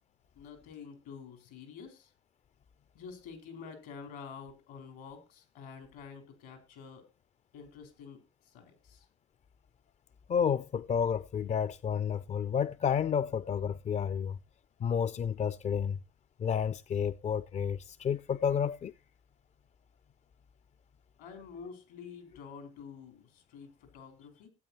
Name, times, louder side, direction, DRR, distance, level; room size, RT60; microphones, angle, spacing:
voice 1, 0.4-2.1 2.9-7.1 7.5-8.2 8.4-9.1 21.2-24.5, left 6 dB, 80° left, 4.4 m, -48 dB
voice 2, 10.3-14.4 14.8-16.0 16.4-18.9, left 7 dB, 45° left, 0.6 m, -30 dB
16.0 x 8.7 x 4.3 m
hypercardioid pair, 55°, 16 cm